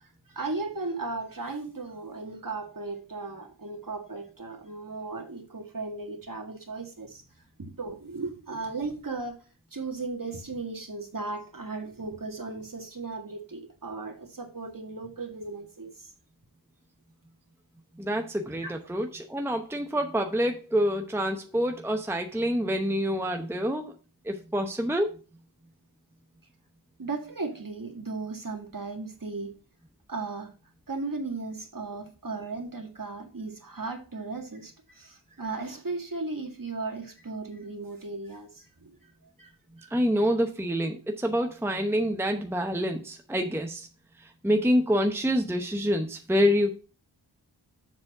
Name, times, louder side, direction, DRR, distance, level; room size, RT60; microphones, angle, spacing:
voice 1, 0.0-7.2 7.6-9.4 9.7-16.1 18.6-18.8 27.0-29.5 30.1-30.5 30.9-39.1 39.4-39.5 39.8-39.9, right 3 dB, 45° right, 1.9 m, -36 dB
voice 2, 18.0-23.9 24.3-25.1 39.9-43.9 44.4-46.8, equal, 5° right, 0.8 m, -27 dB
7.3 x 4.2 x 6.6 m
wide cardioid pair, 70°, 46 cm